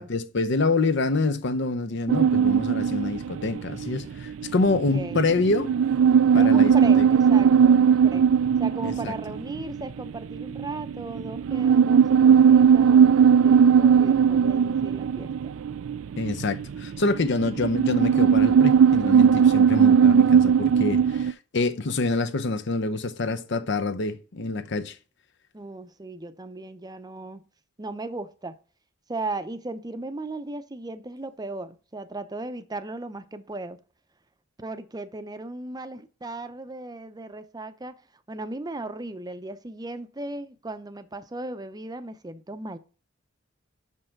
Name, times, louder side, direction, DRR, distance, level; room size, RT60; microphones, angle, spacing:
voice 1, 0.0-5.8 6.3-7.1 8.8-9.1 16.2-25.0, left 3 dB, 60° left, 0.7 m, -26 dB
sound 1, 2.1-21.3, right 7 dB, 90° right, 0.4 m, -19 dB
voice 2, 4.6-5.2 6.4-8.3 8.6-15.6 25.5-27.4 27.8-28.6 29.1-33.8 34.6-38.0 38.3-42.8, right 2 dB, 20° right, 0.6 m, -36 dB
6.1 x 5.6 x 5.7 m
head